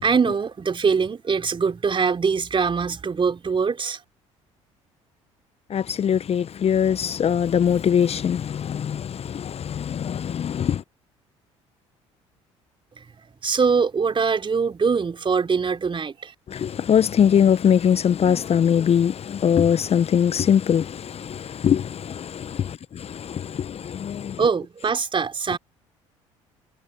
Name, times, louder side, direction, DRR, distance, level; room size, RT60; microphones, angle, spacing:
voice 1, 0.0-4.0 13.4-16.3 24.4-25.6, right 5 dB, 30° right, 4.3 m, -23 dB
voice 2, 5.7-10.8 16.5-24.4, left 8 dB, 40° left, 1.0 m, -22 dB
figure-of-eight pair, 55°, 16 cm